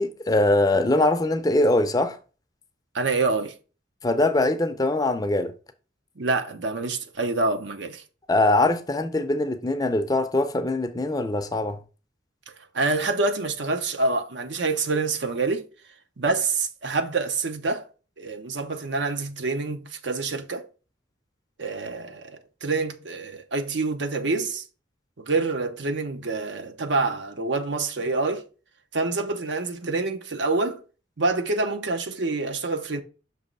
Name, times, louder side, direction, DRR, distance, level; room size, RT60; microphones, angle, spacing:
voice 1, 0.0-2.2 4.0-5.5 8.3-11.8, left 2 dB, 20° left, 0.5 m, -22 dB
voice 2, 2.9-3.5 6.2-8.0 12.7-15.7 16.2-17.9 18.2-20.7 21.6-24.6 25.2-28.5 28.9-30.8 31.2-33.0, right 3 dB, 65° right, 0.8 m, -26 dB
6.2 x 3.0 x 5.2 m
head